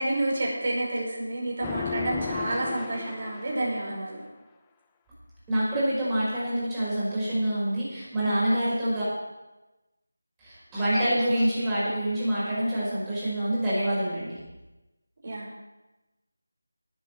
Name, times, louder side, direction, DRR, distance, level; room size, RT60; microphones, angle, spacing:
voice 1, 0.0-4.2 15.2-15.5, right 1 dB, 45° right, -3 dB, 5.4 m, -29 dB
sound 1, 1.6-4.0, left 7 dB, 10° left, 0.5 m, -35 dB
voice 2, 5.5-9.0 10.4-14.4, right 1 dB, 10° right, -9 dB, 5.3 m, -26 dB
18.5 x 8.1 x 4.7 m, 1.1 s
figure-of-eight pair, 170°, 0 cm